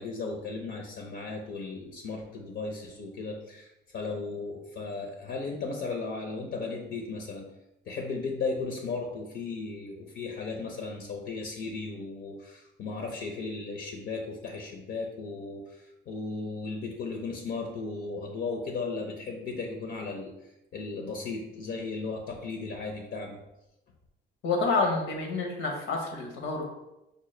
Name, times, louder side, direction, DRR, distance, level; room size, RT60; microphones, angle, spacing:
voice 1, 0.0-7.5 7.9-20.3 20.7-23.4, left 3 dB, 65° left, 2 dB, 0.6 m, -36 dB
voice 2, 24.4-26.7, left 3 dB, 90° left, 1 dB, 0.9 m, -28 dB
5.0 x 2.1 x 3.1 m, 0.92 s
cardioid pair, 90°, 20 cm